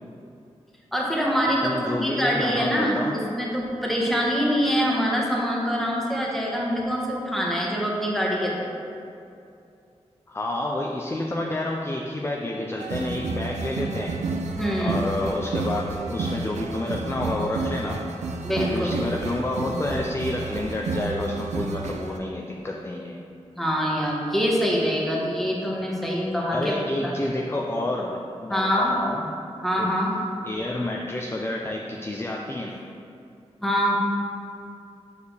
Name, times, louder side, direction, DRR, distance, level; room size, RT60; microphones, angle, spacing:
voice 1, 0.9-8.6 14.5-15.1 18.4-19.0 23.6-26.7 27.0-27.1 28.5-28.9 29.6-30.1 33.6-34.0, equal, ahead, -3 dB, 1.3 m, -24 dB
voice 2, 1.6-3.1 10.3-14.2 14.8-18.0 18.5-23.2 26.5-29.2 29.8-29.9 30.4-32.8, left 1 dB, 20° left, -1 dB, 0.5 m, -29 dB
sound 1, 12.8-22.2, right 3 dB, 80° right, 0.4 m, -31 dB
7.0 x 4.7 x 3.3 m, 2.6 s
cardioid pair, 65°, 12 cm